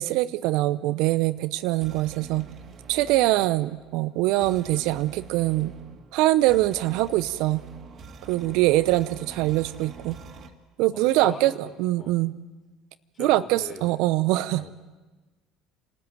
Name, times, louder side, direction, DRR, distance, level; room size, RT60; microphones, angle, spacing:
voice 1, 0.0-2.5 2.9-5.7 6.1-7.6 8.3-10.2 10.8-11.5 11.8-12.3 13.2-14.6, right 17 dB, 70° right, 16 dB, 0.7 m, -23 dB
sound 1, 1.1-10.5, right 4 dB, 50° right, 2.3 m, -46 dB
voice 2, 8.3-8.8 10.9-12.1 13.1-13.9 14.6-14.7, left 4 dB, 40° left, 3 dB, 4.3 m, -42 dB
27.5 x 13.5 x 9.2 m, 1.2 s
hypercardioid pair, 65°, 0 cm